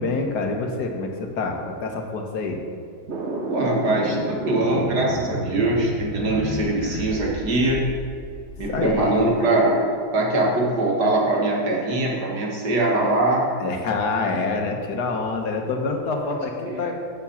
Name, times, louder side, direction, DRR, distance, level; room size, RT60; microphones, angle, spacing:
voice 1, 0.0-2.6 6.1-7.1 8.7-9.3 13.6-17.0, left 3 dB, 85° left, 3 dB, 1.7 m, -27 dB
sound 1, 3.1-9.1, right 1 dB, 45° right, 1.2 m, -32 dB
voice 2, 3.5-7.9 8.6-13.5 16.7-16.9, right 2 dB, 85° right, -2 dB, 2.3 m, -22 dB
7.1 x 7.1 x 7.1 m, 2.3 s
omnidirectional pair, 1.7 m